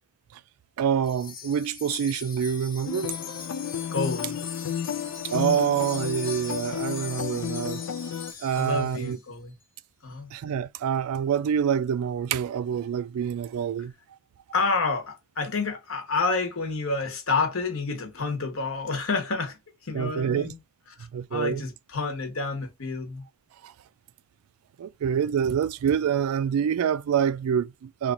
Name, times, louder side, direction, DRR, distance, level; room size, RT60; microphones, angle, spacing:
voice 1, 0.8-3.1 5.2-7.8 8.4-9.2 10.3-13.9 19.9-20.5 21.1-21.6 23.6-23.7 24.8-28.1, right 8 dB, 80° right, 0.3 m, -26 dB
Wind chime, 1.0-9.2, left 6 dB, 40° left, 1.0 m, -40 dB
sound 1, 2.9-8.3, left 8 dB, 90° left, 0.4 m, -32 dB
voice 2, 3.9-4.4 8.5-9.5 10.0-10.3 14.5-19.6 19.8-20.6 21.3-23.2, left 3 dB, 65° left, 0.9 m, -29 dB
2.9 x 2.4 x 3.7 m
head